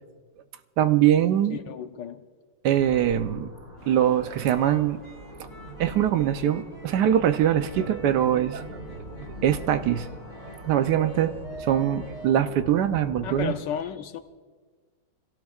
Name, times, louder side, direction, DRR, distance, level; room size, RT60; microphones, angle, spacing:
voice 1, 0.8-1.6 2.6-3.5 3.9-5.0 5.8-8.6 9.4-10.1 10.6-13.5, right 10 dB, 65° right, 9 dB, 1.2 m, -22 dB
voice 2, 1.5-2.3 13.2-14.2, left 9 dB, 70° left, 9 dB, 1.3 m, -33 dB
sound 1, 2.7-13.5, right 1 dB, 45° right, 3.6 m, -42 dB
sound 2, 3.8-12.3, equal, 30° left, 2.4 m, -46 dB
27.5 x 17.5 x 2.4 m, 1.4 s
omnidirectional pair, 2.1 m